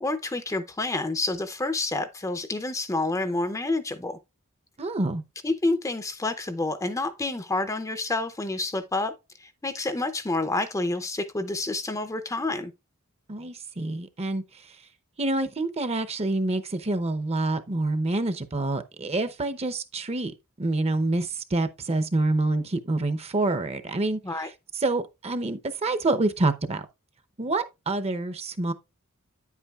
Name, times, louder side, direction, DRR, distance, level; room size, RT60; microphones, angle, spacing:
voice 1, 0.0-4.2 5.4-9.1 9.4-12.7 24.2-24.5, left 2 dB, 15° left, 0.6 m, -28 dB
voice 2, 4.8-5.2 13.3-14.4 15.2-26.9 27.4-28.7, right 2 dB, 30° right, 0.7 m, -27 dB
9.6 x 8.3 x 2.4 m
head